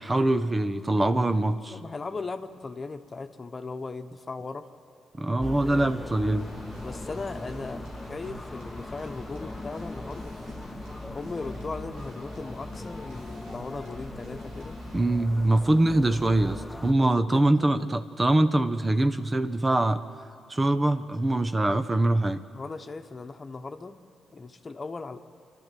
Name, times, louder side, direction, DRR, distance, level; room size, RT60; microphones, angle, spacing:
voice 1, 0.0-1.8 5.2-6.5 14.9-20.0 20.5-22.4, right 1 dB, 25° right, 10 dB, 0.9 m, -23 dB
voice 2, 1.7-4.7 5.6-6.2 6.8-10.4 11.1-14.8 17.0-18.0 22.5-24.0 24.3-25.2, left 3 dB, 40° left, 7 dB, 1.2 m, -38 dB
sound 1, 5.4-16.9, left 2 dB, 15° left, 1.0 m, -39 dB
sound 2, 6.4-15.0, right 4 dB, 80° right, 2.0 m, -50 dB
27.5 x 12.0 x 7.7 m, 2.4 s
hypercardioid pair, 45°, 0 cm